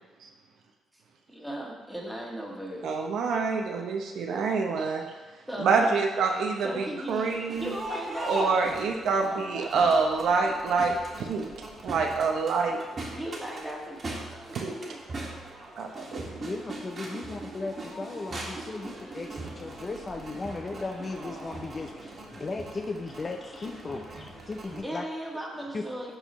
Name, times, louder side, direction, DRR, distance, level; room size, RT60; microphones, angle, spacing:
voice 1, 1.3-3.0 5.5-6.0 6.3-10.6 13.1-15.0 24.8-26.2, right 1 dB, 5° right, -3 dB, 1.7 m, -38 dB
voice 2, 2.8-5.0 5.6-7.7 8.2-10.9 11.2-11.5 11.8-12.8 14.6-14.7 15.8-16.2, right 4 dB, 75° right, 2 dB, 0.8 m, -26 dB
Crowd, 7.0-24.8, right 1 dB, 40° right, 1.6 m, -40 dB
voice 3, 16.4-25.0 25.7-25.8, left 3 dB, 30° left, 4 dB, 0.5 m, -36 dB
12.0 x 4.0 x 3.1 m, 1.2 s
cardioid pair, 90°, 0 cm